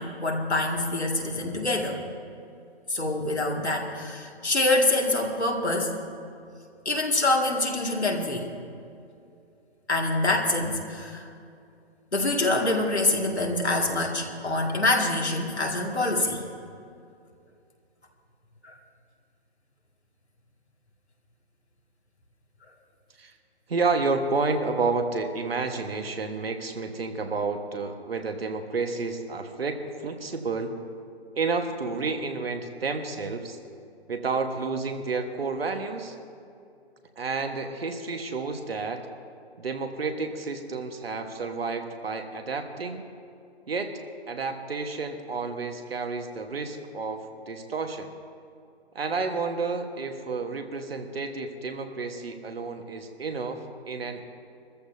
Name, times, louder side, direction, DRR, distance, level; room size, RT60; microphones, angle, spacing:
voice 1, 0.0-2.0 2.9-5.9 6.9-8.5 9.9-11.3 12.1-16.4 18.6-18.7, left 2 dB, 90° left, 0 dB, 2.2 m, -25 dB
voice 2, 23.7-30.8 31.3-33.6 34.1-36.2 37.2-39.0 39.6-43.0 43.7-44.0 44.3-48.1 48.9-54.3, right 4 dB, 65° right, 6 dB, 1.5 m, -30 dB
23.0 x 14.0 x 2.7 m, 2.5 s
figure-of-eight pair, 140°, 32 cm